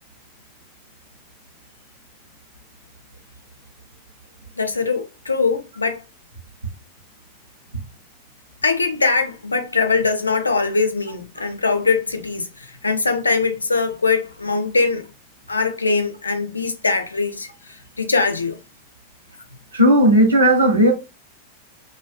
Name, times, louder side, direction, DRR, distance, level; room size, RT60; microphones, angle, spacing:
voice 1, 4.6-6.0 8.6-15.1 15.5-18.6, left 4 dB, 80° left, 0.4 m, -22 dB
voice 2, 19.7-20.9, equal, 80° right, 0.8 m, -14 dB
2.5 x 2.3 x 2.3 m
figure-of-eight pair, 90°, 0 cm